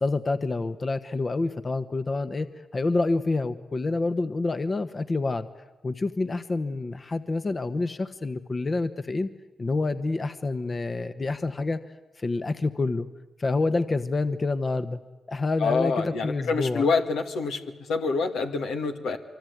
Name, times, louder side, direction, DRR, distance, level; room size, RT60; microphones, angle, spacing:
voice 1, 0.0-5.5 5.8-9.3 9.6-11.8 12.2-13.1 13.4-15.0 15.3-16.9, left 3 dB, 40° left, 10 dB, 1.3 m, -27 dB
voice 2, 15.6-17.6 17.9-19.2, left 4 dB, 85° left, 4 dB, 2.0 m, -26 dB
25.0 x 24.5 x 9.5 m, 1.1 s
supercardioid pair, 45°, 0 cm